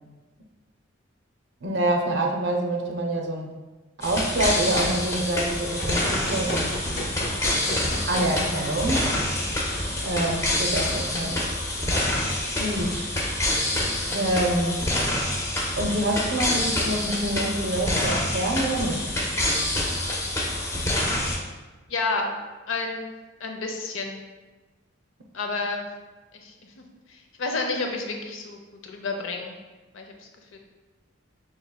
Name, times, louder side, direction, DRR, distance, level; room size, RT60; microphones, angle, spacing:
voice 1, 1.6-3.6 4.0-6.7 8.1-9.1 10.0-11.4 12.4-13.1 14.1-14.8 15.8-19.3, right 1 dB, 60° right, 1 dB, 0.5 m, -26 dB
sound 1, 4.0-21.4, left 1 dB, 15° left, 0.5 m, -27 dB
Run, 5.8-11.9, left 1 dB, 50° left, 0.8 m, -35 dB
voice 2, 21.9-22.3 22.7-23.1 23.4-24.2 25.3-25.8 26.4-26.8 27.1-29.6 29.9-30.6, left 3 dB, 80° left, 3 dB, 0.6 m, -30 dB
5.4 x 3.1 x 2.2 m, 1.2 s
head